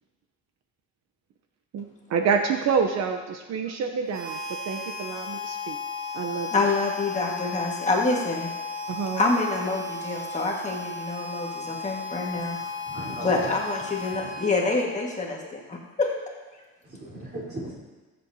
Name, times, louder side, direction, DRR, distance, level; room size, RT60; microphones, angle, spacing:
voice 1, 1.7-4.4 4.6-5.8 6.1-6.6 8.9-9.2, right 6 dB, 60° right, 4 dB, 0.8 m, -27 dB
Harmonica, 4.1-15.1, left 4 dB, 90° right, 2.3 m, -35 dB
voice 2, 6.5-8.5 9.1-12.6 13.2-16.1, left 3 dB, 25° left, -2 dB, 1.7 m, -27 dB
voice 3, 12.8-13.6 14.1-14.3 16.8-17.8, right 1 dB, 30° right, -5 dB, 3.8 m, -37 dB
21.5 x 7.7 x 2.8 m, 1.2 s
cardioid pair, 135°, 30 cm